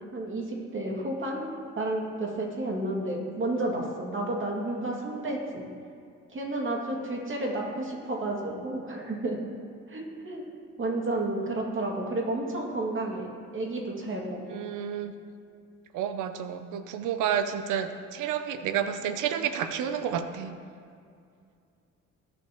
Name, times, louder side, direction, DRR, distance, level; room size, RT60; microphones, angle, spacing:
voice 1, 0.1-1.5 1.7-5.6 6.3-9.4 9.9-10.4 10.8-14.6, right 2 dB, 40° right, -1 dB, 2.5 m, -31 dB
voice 2, 14.5-15.1 15.9-20.5, right 8 dB, 90° right, 9 dB, 0.8 m, -30 dB
18.5 x 7.7 x 3.1 m, 2.4 s
cardioid pair, 90°, 30 cm